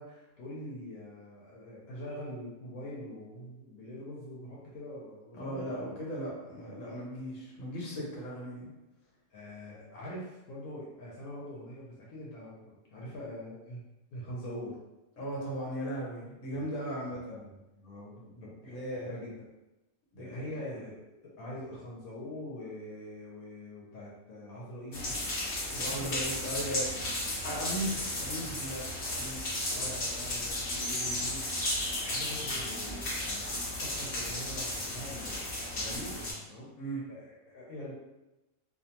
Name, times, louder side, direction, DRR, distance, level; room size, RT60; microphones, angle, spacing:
voice 1, 0.0-6.0 9.3-13.8 14.1-14.8 16.5-16.6 17.2-19.3 20.2-25.2 25.7-26.5 27.8-28.0 29.0-29.2 29.7-35.5 35.7-36.2 36.5-37.9, left 1 dB, 85° left, -5 dB, 1.1 m, -44 dB
voice 2, 5.3-8.7 15.2-17.2 18.6-19.1 20.1-20.5 25.8-26.9 27.4-30.0 36.8-37.0, right 1 dB, 65° left, -4 dB, 1.2 m, -37 dB
sound 1, 24.9-36.3, left 1 dB, 50° left, 0.7 m, -34 dB
2.5 x 2.2 x 2.8 m, 1.0 s
omnidirectional pair, 1.5 m